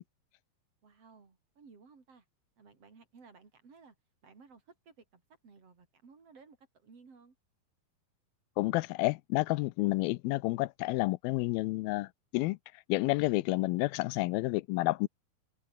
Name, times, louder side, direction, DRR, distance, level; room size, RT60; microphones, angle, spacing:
voice 1, 0.8-2.3 2.6-4.0 4.2-7.4, right 5 dB, 40° right, 5.2 m, -58 dB
voice 2, 8.6-12.6 12.9-15.1, left 21 dB, 85° left, 2.4 m, -30 dB
omnidirectional pair, 4.2 m